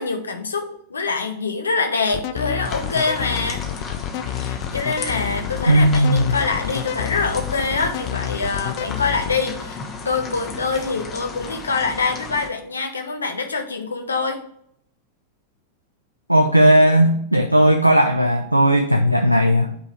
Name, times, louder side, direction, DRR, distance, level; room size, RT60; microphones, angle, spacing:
voice 1, 0.0-3.6 4.4-9.8 10.0-14.4, left 4 dB, 75° left, 5 dB, 1.0 m, -25 dB
sound 1, 2.1-9.4, left 12 dB, 50° left, 0.5 m, -29 dB
sound 2, 2.7-12.5, left 4 dB, 30° left, 1.3 m, -34 dB
voice 2, 5.7-6.3 16.3-19.7, equal, 90° right, 6 dB, 0.5 m, -16 dB
8.9 x 3.9 x 4.3 m, 0.69 s
figure-of-eight pair, 90°, 0 cm